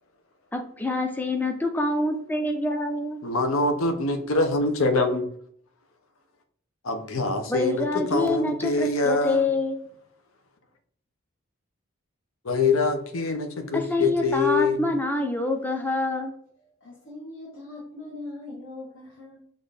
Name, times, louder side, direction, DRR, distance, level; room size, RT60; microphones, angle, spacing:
voice 1, 0.5-3.2 7.5-9.8 13.7-16.3, left 2 dB, 10° left, 0.5 m, -26 dB
voice 2, 3.2-5.3 6.8-9.5 12.4-14.8, left 3 dB, 80° left, 0.7 m, -24 dB
voice 3, 16.8-19.4, left 2 dB, 60° left, 1.2 m, -40 dB
6.0 x 2.6 x 3.4 m
head